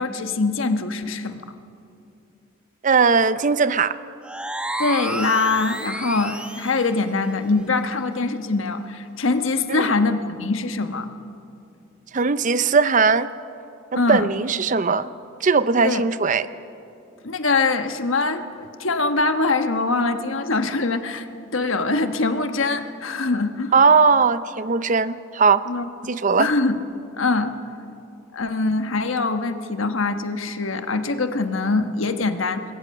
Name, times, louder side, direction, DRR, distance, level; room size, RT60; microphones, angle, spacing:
voice 1, 0.0-1.4 4.8-11.1 13.9-14.3 15.8-16.0 17.2-18.4 18.8-21.3 21.5-23.7 25.7-25.8 26.4-26.8 27.2-27.6 28.3-32.6, left 3 dB, 75° left, 8 dB, 1.3 m, -23 dB
voice 2, 2.8-4.0 9.7-9.9 12.1-13.3 13.9-15.1 15.4-16.5 23.7-25.6 26.1-26.5, right 5 dB, 40° right, 14 dB, 0.6 m, -19 dB
sound 1, 4.2-6.9, right 1 dB, 5° right, 1.1 m, -30 dB
27.0 x 21.5 x 6.6 m, 2.7 s
head